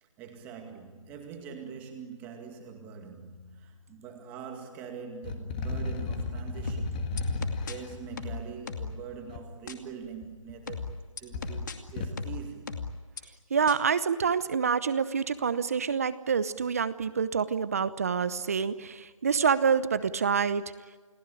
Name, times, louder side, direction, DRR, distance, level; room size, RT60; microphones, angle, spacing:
voice 1, 0.0-7.2 7.5-10.9 11.2-12.8, right 6 dB, 10° right, 2.1 m, -43 dB
sound 1, 5.2-9.4 10.2-10.9 11.2-12.2, left 3 dB, 15° left, 1.7 m, -35 dB
sound 2, 6.7-7.7 8.2-9.0 9.7-9.8 10.7-11.7 12.2-13.2 13.7-13.8, left 5 dB, 35° left, 2.4 m, -36 dB
voice 2, 13.5-20.6, right 6 dB, 25° right, 0.9 m, -27 dB
29.5 x 19.5 x 10.0 m
figure-of-eight pair, 170°, 18 cm